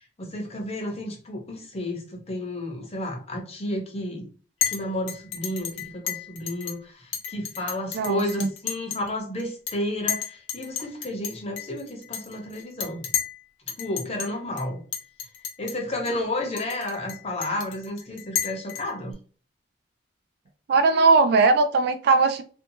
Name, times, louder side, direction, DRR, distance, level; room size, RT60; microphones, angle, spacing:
voice 1, 0.2-4.3 4.7-13.0 13.8-14.8 15.6-19.2, left 1 dB, 35° left, 2 dB, 0.7 m, -31 dB
Chink clink, 4.6-4.8 5.1-6.8 7.1-9.1 9.4-9.8 10.1-13.4 13.7-14.3 14.6-14.7 14.9-15.8 16.1-16.2 16.6-19.1, left 9 dB, 90° left, 0.5 m, -31 dB
voice 2, 7.9-8.5 20.7-22.4, right 4 dB, 55° right, 9 dB, 0.3 m, -19 dB
2.6 x 2.3 x 2.6 m, 0.40 s
head